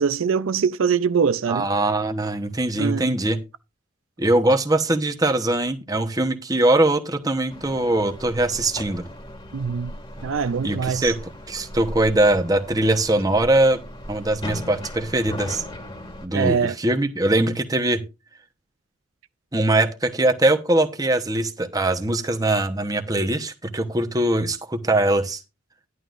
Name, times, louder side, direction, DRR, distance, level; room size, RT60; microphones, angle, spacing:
voice 1, 0.0-1.7 2.8-3.1 9.5-9.9 10.2-11.1 16.3-16.8, right 6 dB, 80° right, 0.5 m, -23 dB
voice 2, 1.5-3.4 4.2-9.0 10.6-11.2 11.5-13.8 14.1-15.6 16.2-18.0 19.5-25.4, right 1 dB, 20° right, 1.0 m, -21 dB
sound 1, 7.5-16.3, left 1 dB, 25° left, 2.0 m, -37 dB
11.0 x 11.0 x 2.5 m
head